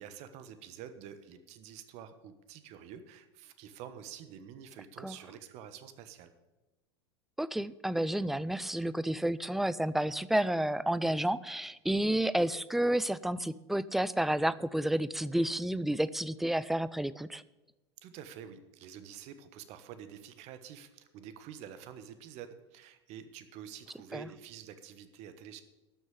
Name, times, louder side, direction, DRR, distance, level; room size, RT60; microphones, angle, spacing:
voice 1, 0.0-6.3 18.0-25.6, right 9 dB, 50° right, 11 dB, 1.2 m, -48 dB
voice 2, 7.4-17.4 24.1-24.3, right 1 dB, ahead, 17 dB, 0.4 m, -30 dB
12.0 x 6.4 x 7.9 m, 1.1 s
hypercardioid pair, 85°, 14 cm